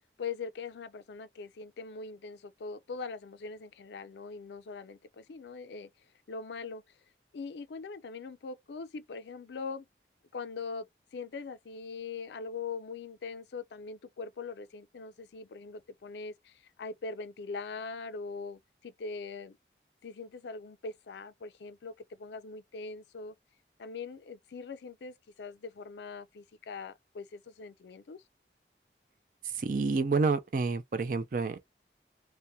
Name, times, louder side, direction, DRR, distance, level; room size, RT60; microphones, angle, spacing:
voice 1, 0.2-5.9 6.3-6.8 7.3-9.9 10.3-10.9 11.1-19.6 20.0-21.9 22.2-23.3 23.8-28.2, left 4 dB, 80° left, 0.4 m, -42 dB
voice 2, 29.4-31.6, right 4 dB, 50° right, 0.4 m, -29 dB
2.7 x 2.2 x 2.2 m
head